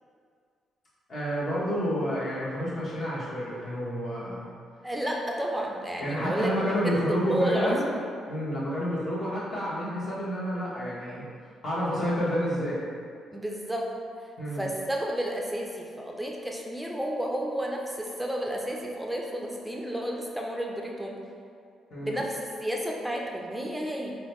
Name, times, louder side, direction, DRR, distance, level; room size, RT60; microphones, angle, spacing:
voice 1, 1.1-4.4 6.0-7.8 8.3-11.2 11.6-12.8 14.4-14.7 21.9-22.2, equal, 45° left, -9 dB, 1.2 m, -29 dB
voice 2, 4.8-6.5 6.8-7.9 13.3-13.9 14.5-21.2 22.0-24.2, equal, 5° right, -1 dB, 0.5 m, -31 dB
3.8 x 2.2 x 3.1 m, 2.3 s
cardioid pair, 90°, 0 cm